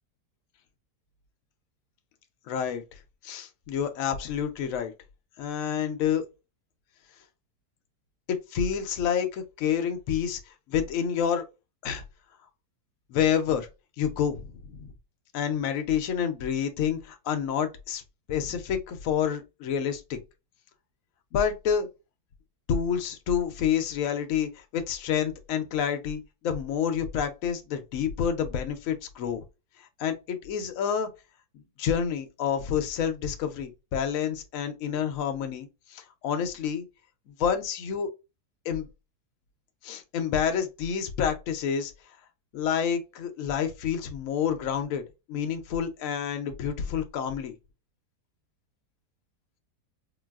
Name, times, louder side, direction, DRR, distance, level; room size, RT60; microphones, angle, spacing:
voice 1, 2.5-2.8 3.2-4.9 5.4-6.2 8.5-11.4 11.8-12.0 13.1-13.7 14.0-14.8 15.3-18.0 18.3-20.2 21.3-21.9 22.7-29.4 29.8-31.1 31.8-36.9 37.3-38.1 38.6-38.9 39.8-41.9 42.5-47.5, left 8 dB, 65° left, 0.9 m, -28 dB
3.8 x 2.3 x 2.3 m
omnidirectional pair, 1.8 m